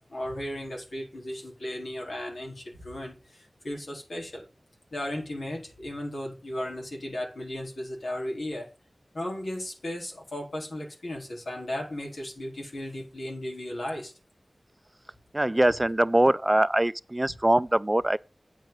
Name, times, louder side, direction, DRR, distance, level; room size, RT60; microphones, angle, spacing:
voice 1, 0.1-4.5 4.9-8.7 9.1-14.1, left 1 dB, 90° left, 3.9 m, -35 dB
voice 2, 15.3-18.2, right 1 dB, 25° right, 0.4 m, -23 dB
9.0 x 7.8 x 3.9 m
wide cardioid pair, 55°, 0 cm